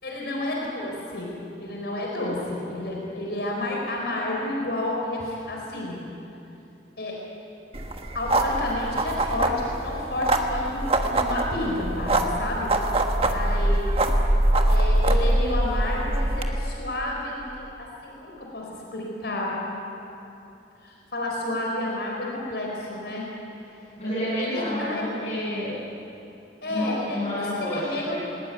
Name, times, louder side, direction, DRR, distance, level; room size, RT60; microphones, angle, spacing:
voice 1, 0.0-1.3 1.6-6.0 7.0-7.2 8.1-12.7 13.2-14.0 14.7-19.6 20.8-23.3 24.4-25.1 26.6-28.2, left 1 dB, 70° left, -2 dB, 4.6 m, -30 dB
sound 1, 7.7-16.5, right 1 dB, 35° right, 1.5 m, -23 dB
voice 2, 24.0-25.8 26.7-28.2, left 1 dB, 40° left, -12 dB, 7.6 m, -29 dB
20.0 x 20.0 x 9.4 m, 2.9 s
head